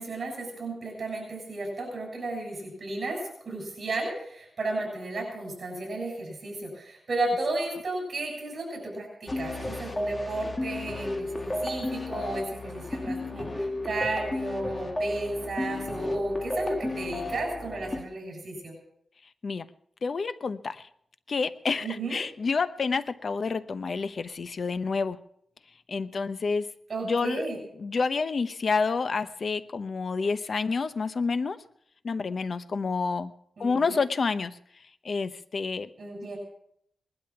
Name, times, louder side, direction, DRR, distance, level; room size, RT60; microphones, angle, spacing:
voice 1, 0.0-3.2 3.5-18.7 21.8-22.2 26.9-27.6 33.6-34.0 36.0-36.4, right 2 dB, 55° right, 0 dB, 7.2 m, -33 dB
sound 1, 9.3-18.0, left 1 dB, 20° left, 1.8 m, -33 dB
voice 2, 20.0-20.8 21.3-25.2 25.9-26.7 27.0-27.4 27.8-31.6 32.0-33.3 33.6-34.6 35.0-35.9, left 4 dB, 50° left, 12 dB, 0.8 m, -29 dB
20.0 x 12.0 x 5.9 m, 0.69 s
wide cardioid pair, 120°, 0 cm